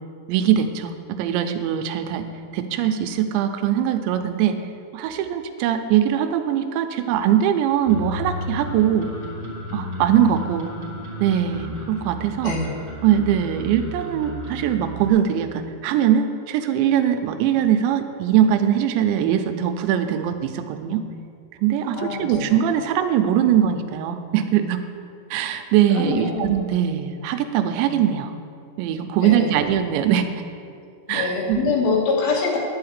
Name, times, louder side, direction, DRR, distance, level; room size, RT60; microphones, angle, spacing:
voice 1, 0.3-2.3 2.5-4.6 4.9-9.1 9.7-10.7 11.2-12.5 13.0-21.0 21.6-24.8 25.3-28.3 28.8-30.3 31.1-31.8, right 10 dB, 85° right, 7 dB, 2.9 m, -21 dB
sound 1, 7.8-15.1, equal, 10° right, 2.6 m, -33 dB
voice 2, 22.0-22.6 25.9-26.5 29.2-29.6 31.1-32.6, left 4 dB, 65° left, -1 dB, 2.9 m, -24 dB
11.0 x 5.7 x 8.1 m, 2.4 s
omnidirectional pair, 5.3 m